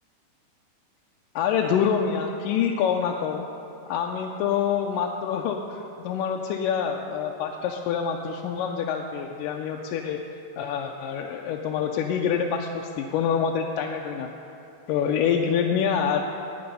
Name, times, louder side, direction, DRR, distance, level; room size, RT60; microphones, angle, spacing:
voice 1, 1.4-3.5 3.9-10.2 10.6-14.3 14.9-16.2, left 7 dB, 85° left, 1 dB, 2.3 m, -26 dB
19.0 x 6.9 x 5.4 m, 2.7 s
omnidirectional pair, 3.8 m